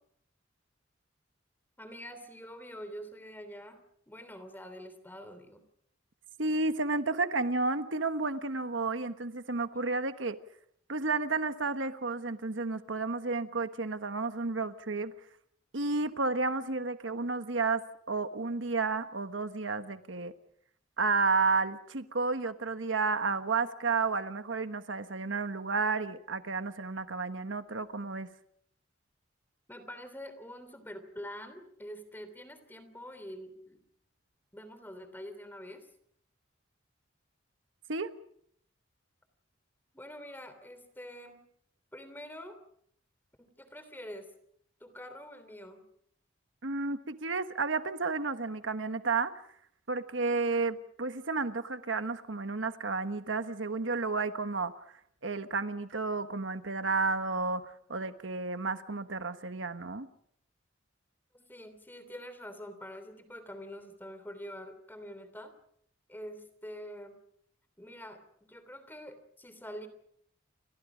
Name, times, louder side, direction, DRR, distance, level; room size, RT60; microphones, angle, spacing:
voice 1, 1.8-5.6 29.7-33.8 34.5-35.9 39.9-41.4 41.9-42.6 43.4-44.3 44.8-45.9 61.3-65.5 66.1-67.2 67.8-69.9, equal, 10° left, 10 dB, 3.1 m, -46 dB
voice 2, 6.4-10.4 10.9-15.1 15.7-17.8 18.1-20.3 21.0-28.3 37.9-38.1 46.6-49.3 49.9-54.7 55.2-60.1, right 3 dB, 70° right, 9 dB, 1.3 m, -31 dB
29.5 x 25.0 x 5.1 m, 0.68 s
head